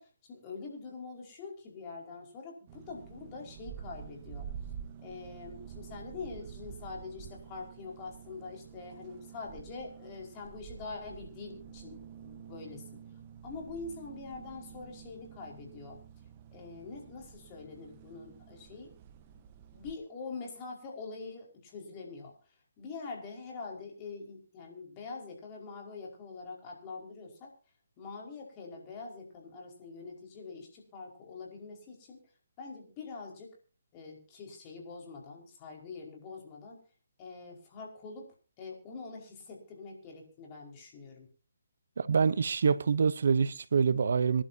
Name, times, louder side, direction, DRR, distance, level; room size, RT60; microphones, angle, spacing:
voice 1, 0.0-4.5 5.0-12.8 13.4-16.0 16.5-18.9 19.3-19.4 19.7-22.3 22.8-27.5 28.0-32.2 32.6-33.5 33.9-36.8 37.2-38.3 38.6-41.3, left 4 dB, 25° left, 5.0 m, -44 dB
sound 1, 2.7-20.0, right 8 dB, 30° right, 1.2 m, -48 dB
voice 2, 42.0-44.4, right 6 dB, 65° right, 0.8 m, -26 dB
26.5 x 11.5 x 2.8 m
hypercardioid pair, 155°, 0 cm